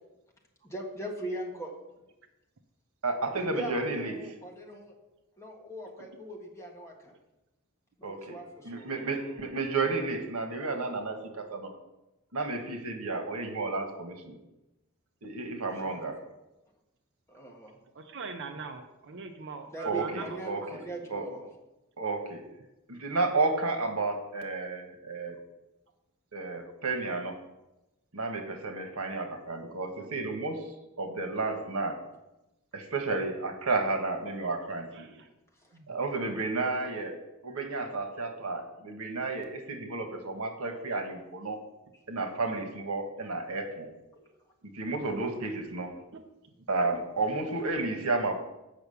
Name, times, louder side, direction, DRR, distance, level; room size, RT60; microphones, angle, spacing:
voice 1, 0.6-1.7 3.3-4.9 5.4-7.1 8.0-8.9 15.7-16.0 17.3-17.8 19.7-21.5 35.6-35.7, right 1 dB, 15° left, -1 dB, 1.6 m, -40 dB
voice 2, 3.0-4.1 8.0-8.4 8.6-11.7 12.3-14.4 15.2-16.2 19.8-20.8 21.1-21.2 22.0-22.4 22.9-25.4 26.3-27.4 28.1-30.7 31.0-32.0 32.7-35.1 35.9-37.2 37.4-41.6 42.1-43.9 44.2-44.3 44.7-45.9 46.7-48.3, right 3 dB, 75° right, 5 dB, 1.4 m, -32 dB
voice 3, 17.9-20.4 34.9-35.3 35.7-35.9 46.1-46.2, right 4 dB, 55° right, 6 dB, 0.6 m, -42 dB
8.2 x 5.8 x 6.9 m, 0.96 s
head